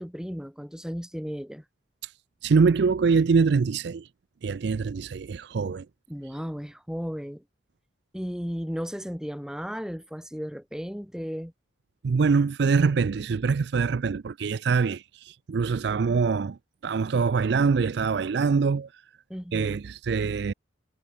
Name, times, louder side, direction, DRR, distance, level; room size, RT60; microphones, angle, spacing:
voice 1, 0.0-1.6 6.1-7.4 8.1-11.5 19.3-19.8, equal, 5° right, 1.8 m, -35 dB
voice 2, 2.4-4.1 4.4-5.9 12.0-18.9 19.5-20.5, right 5 dB, 60° right, 0.4 m, -24 dB
head